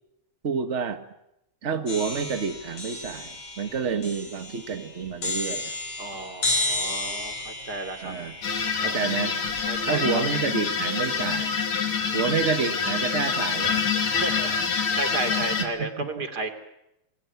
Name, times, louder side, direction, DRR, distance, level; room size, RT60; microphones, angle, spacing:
voice 1, 0.4-1.0 1.6-5.8 8.0-8.4 8.8-9.4 9.9-11.6 12.1-13.8 15.4-16.2, right 6 dB, 50° right, 8 dB, 0.8 m, -29 dB
sound 1, 1.9-9.8, left 2 dB, 50° left, 6.6 m, -33 dB
voice 2, 6.0-8.1 8.8-9.0 9.7-10.2 12.1-12.2 14.1-16.5, right 2 dB, 30° right, 8 dB, 3.2 m, -33 dB
sound 2, 8.4-15.6, left 6 dB, 65° left, 4.1 m, -26 dB
28.5 x 21.5 x 9.4 m, 0.84 s
omnidirectional pair, 3.5 m